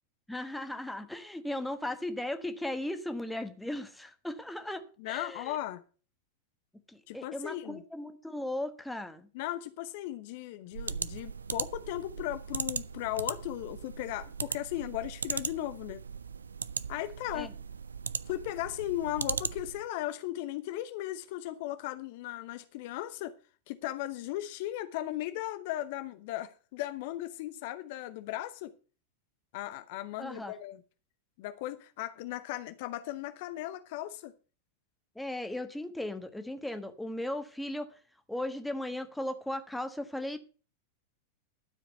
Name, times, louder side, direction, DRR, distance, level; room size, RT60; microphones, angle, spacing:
voice 1, 0.3-5.6 6.9-9.3 17.3-17.5 30.2-30.5 35.1-37.9 38.3-40.4, left 1 dB, 5° left, 1.3 m, -37 dB
voice 2, 5.0-5.8 7.1-7.8 9.3-16.0 16.9-17.5 18.3-23.3 23.7-28.7 29.5-30.8 31.4-34.3, left 14 dB, 50° left, 0.7 m, -37 dB
sound 1, 10.7-19.9, right 6 dB, 75° right, 0.4 m, -38 dB
12.5 x 5.0 x 7.8 m
figure-of-eight pair, 90°, 0 cm